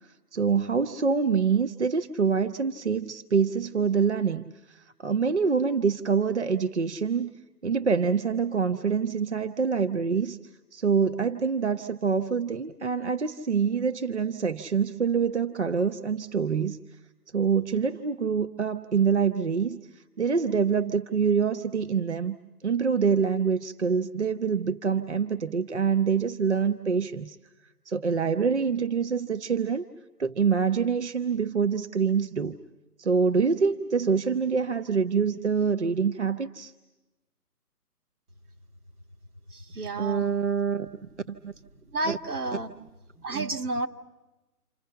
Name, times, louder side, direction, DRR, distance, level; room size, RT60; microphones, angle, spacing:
voice 1, 0.3-7.3 7.6-10.4 10.7-16.8 17.3-19.8 20.2-22.4 22.6-27.4 27.9-29.8 30.2-32.6 33.0-36.7 40.0-40.9 41.3-41.5 43.3-43.5, right 6 dB, 45° right, 9 dB, 0.8 m, -25 dB
voice 2, 39.5-40.3 41.8-42.9 43.2-43.9, right 2 dB, 70° right, 4 dB, 2.1 m, -31 dB
29.0 x 26.5 x 5.7 m, 1.1 s
hypercardioid pair, 175°, 47 cm